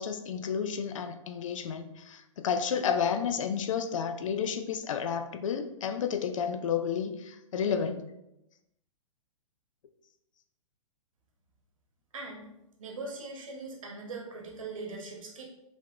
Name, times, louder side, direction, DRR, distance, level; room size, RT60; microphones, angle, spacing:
voice 1, 0.0-8.0, left 7 dB, 70° left, 8 dB, 0.5 m, -31 dB
voice 2, 12.1-12.5 12.8-15.4, right 3 dB, 75° right, 0 dB, 1.2 m, -40 dB
3.8 x 3.5 x 3.2 m, 0.89 s
hypercardioid pair, 120°, 17 cm